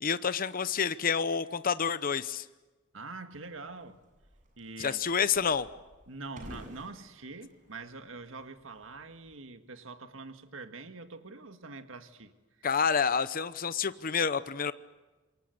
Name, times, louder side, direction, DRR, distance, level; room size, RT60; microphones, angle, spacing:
voice 1, 0.0-2.4 4.8-5.7 12.6-14.7, left 6 dB, 45° left, 0.8 m, -28 dB
voice 2, 2.9-4.0 4.6-5.0 6.1-12.3 12.6-12.7, right 3 dB, 90° right, 1.8 m, -44 dB
sound 1, 3.4-9.4, equal, 40° right, 7.5 m, -54 dB
27.5 x 23.0 x 8.0 m
head